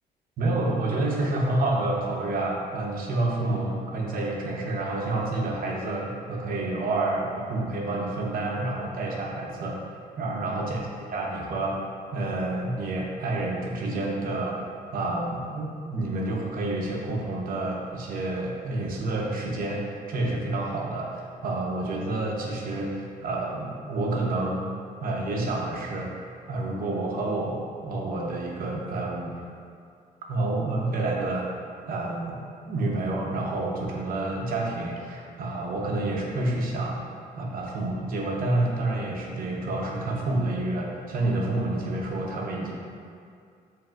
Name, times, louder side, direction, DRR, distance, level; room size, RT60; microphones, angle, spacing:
voice 1, 0.4-9.8 10.2-10.8 11.1-11.8 12.1-14.6 14.9-24.7 25.0-26.1 26.5-29.3 30.3-31.5 31.9-32.4 32.7-37.0 37.4-42.7, right 2 dB, 60° right, -2 dB, 0.8 m, -29 dB
7.4 x 2.7 x 2.4 m, 2.3 s
cardioid pair, 105°, 16 cm